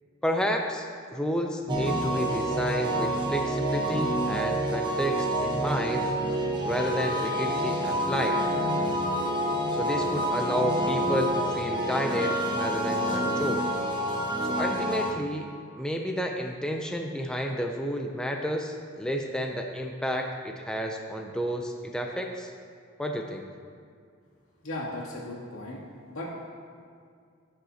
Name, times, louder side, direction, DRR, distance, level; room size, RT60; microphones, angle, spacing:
voice 1, 0.2-6.1 6.6-8.4 9.7-13.7 14.4-15.5 15.8-22.5 23.0-23.4, equal, 5° left, 2 dB, 0.4 m, -31 dB
sound 1, 1.7-15.1, right 1 dB, 20° right, 1.0 m, -28 dB
voice 2, 24.6-25.8 26.1-26.5, left 1 dB, 85° left, -5 dB, 2.3 m, -36 dB
16.0 x 5.7 x 2.8 m, 2.2 s
head